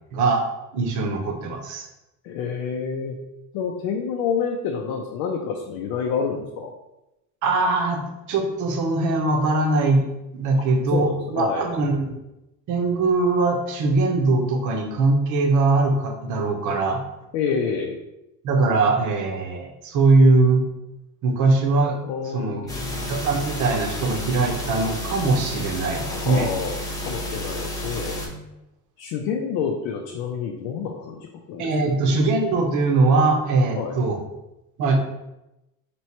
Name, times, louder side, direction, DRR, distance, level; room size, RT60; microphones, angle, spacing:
voice 1, 0.1-0.4 0.7-1.9 7.4-8.0 8.3-10.1 10.3-12.2 12.7-17.0 18.4-20.7 21.2-22.0 22.3-22.6 23.1-26.5 31.6-34.2 34.8-35.0, right 3 dB, 55° right, 2 dB, 0.9 m, -21 dB
voice 2, 2.2-3.2 3.5-6.7 10.6-10.7 10.9-11.7 17.3-18.0 22.0-23.1 25.9-26.8 27.0-28.2 29.0-31.9 33.7-34.0, left 6 dB, 85° left, 1 dB, 0.6 m, -28 dB
sound 1, 22.7-28.3, left 1 dB, 10° left, 0.9 m, -31 dB
3.0 x 3.0 x 4.3 m, 0.93 s
cardioid pair, 120°, 37 cm